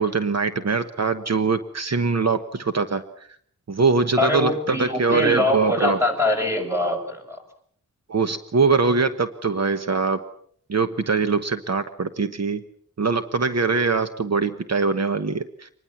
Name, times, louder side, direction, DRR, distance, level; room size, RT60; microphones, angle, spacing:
voice 1, 0.0-3.0 3.7-6.0 8.1-10.2 10.7-12.6 13.0-15.7, right 4 dB, 55° right, 9 dB, 1.3 m, -22 dB
voice 2, 4.2-7.4, left 1 dB, 10° right, 3 dB, 6.5 m, -23 dB
25.5 x 20.5 x 7.3 m, 0.62 s
wide cardioid pair, 135°, 31 cm